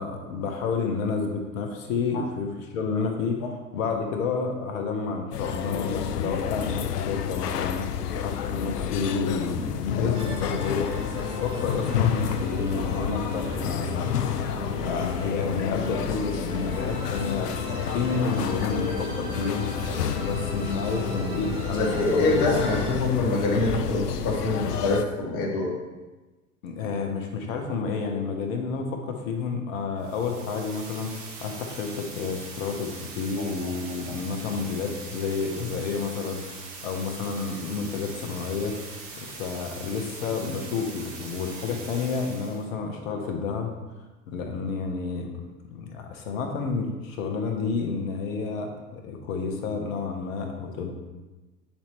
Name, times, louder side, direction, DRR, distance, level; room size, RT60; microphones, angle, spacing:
voice 1, 0.0-3.4 3.7-11.0 11.4-14.2 14.9-19.7 20.2-22.8 26.6-36.6 36.8-38.7 39.4-43.7 44.3-45.3 45.7-50.9, left 5 dB, 55° left, 3 dB, 1.3 m, -30 dB
sound 1, 5.3-25.0, left 9 dB, 80° left, 0.6 m, -30 dB
Musical instrument, 10.1-22.9, right 2 dB, 10° right, 1.5 m, -36 dB
voice 2, 21.7-25.7 33.6-33.7 34.1-34.2, left 2 dB, 40° left, -1 dB, 1.8 m, -25 dB
sound 2, 30.0-42.7, right 3 dB, 40° right, 1.7 m, -42 dB
8.6 x 4.4 x 3.1 m, 1.2 s
hypercardioid pair, 90°, 46 cm